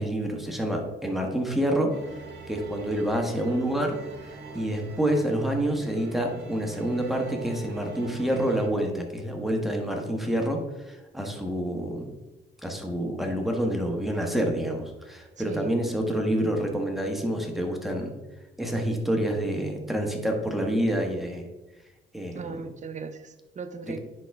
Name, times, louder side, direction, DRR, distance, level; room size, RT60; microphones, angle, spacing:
voice 1, 0.0-1.9 2.5-4.0 4.5-12.0 12.6-18.1 18.6-21.4 22.1-22.6 23.8-24.0, right 1 dB, ahead, 2 dB, 1.2 m, -27 dB
sound 1, 1.9-8.7, right 3 dB, 60° right, 1.3 m, -43 dB
voice 2, 22.3-24.0, right 5 dB, 40° right, 9 dB, 0.7 m, -38 dB
9.9 x 3.9 x 3.5 m, 1.1 s
cardioid pair, 90°, 20 cm